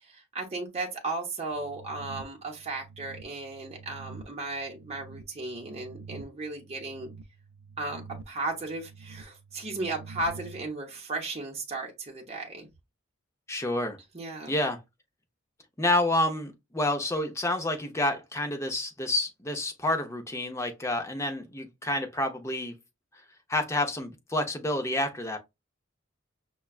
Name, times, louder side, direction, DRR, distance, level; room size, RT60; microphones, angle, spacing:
voice 1, 0.0-7.1 7.8-8.0 8.3-12.7 14.1-14.5, right 2 dB, 30° right, 0.8 m, -35 dB
sound 1, 1.5-10.7, right 4 dB, 55° right, 0.4 m, -47 dB
voice 2, 13.5-14.0 14.5-14.8 15.8-22.7 23.5-25.4, left 1 dB, 15° left, 0.6 m, -29 dB
5.6 x 2.2 x 2.3 m
head